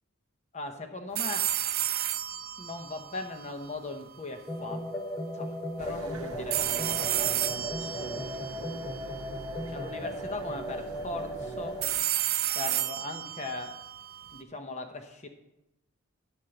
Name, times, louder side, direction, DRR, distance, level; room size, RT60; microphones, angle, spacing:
voice 1, 0.5-1.5 2.6-4.9 5.3-8.5 9.7-11.8 12.5-13.8 14.3-15.3, left 2 dB, 30° left, 5 dB, 0.9 m, -39 dB
sound 1, 1.1-4.2 6.5-9.6 11.8-14.4, right 12 dB, 45° right, 0.5 m, -32 dB
sound 2, 4.5-11.9, equal, 10° left, 0.5 m, -37 dB
sound 3, 5.8-12.0, right 2 dB, 85° right, 0.8 m, -44 dB
10.0 x 4.5 x 7.7 m, 0.96 s
head